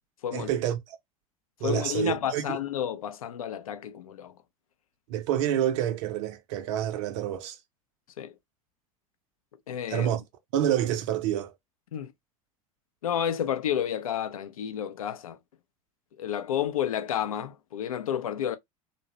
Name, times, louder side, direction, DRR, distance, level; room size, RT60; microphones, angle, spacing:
voice 1, 0.3-1.0 1.6-2.6 5.1-7.6 9.9-10.2 10.5-11.5, right 11 dB, 55° right, 0.5 m, -28 dB
voice 2, 1.6-4.3 8.2-8.3 9.7-10.1 11.9-12.1 13.0-15.4 16.2-18.6, left 9 dB, 70° left, 0.5 m, -30 dB
2.6 x 2.1 x 2.9 m
figure-of-eight pair, 70°, 18 cm